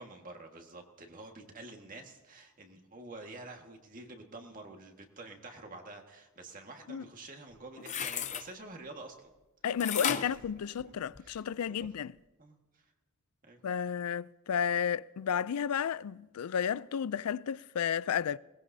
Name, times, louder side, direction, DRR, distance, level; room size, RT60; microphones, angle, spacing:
voice 1, 0.0-9.3 10.2-10.3 10.8-10.9 11.2-11.4 11.7-11.9 12.4-12.9 13.5-13.6, right 2 dB, 40° right, 1.7 m, -48 dB
sound 1, 7.5-8.5 9.8-11.4 11.8-11.9, left 8 dB, 35° left, 0.6 m, -35 dB
voice 2, 9.6-12.1 13.6-18.4, left 8 dB, 85° left, 0.4 m, -32 dB
21.5 x 18.5 x 2.7 m
head